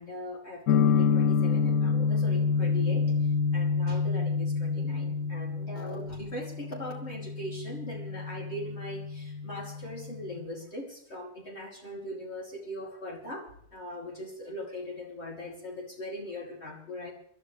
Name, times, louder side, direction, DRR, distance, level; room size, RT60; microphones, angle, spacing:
voice 1, 0.0-17.1, left 1 dB, 45° left, -3 dB, 3.1 m, -40 dB
sound 1, 0.7-10.4, left 5 dB, 75° left, 1.2 m, -28 dB
26.0 x 12.0 x 3.3 m, 0.67 s
omnidirectional pair, 1.6 m